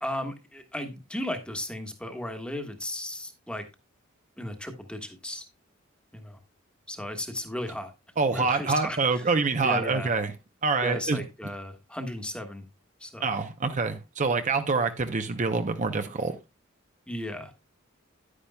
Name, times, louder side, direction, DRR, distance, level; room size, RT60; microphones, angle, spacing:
voice 1, 0.0-3.6 4.4-5.4 6.1-6.4 6.9-7.9 8.3-9.2 9.6-10.1 10.8-12.6 13.0-13.3 17.1-17.5, left 1 dB, 5° left, 1.4 m, -35 dB
voice 2, 8.2-10.3 10.6-11.2 13.2-16.4, right 4 dB, 40° right, 0.7 m, -26 dB
10.5 x 9.7 x 2.2 m
head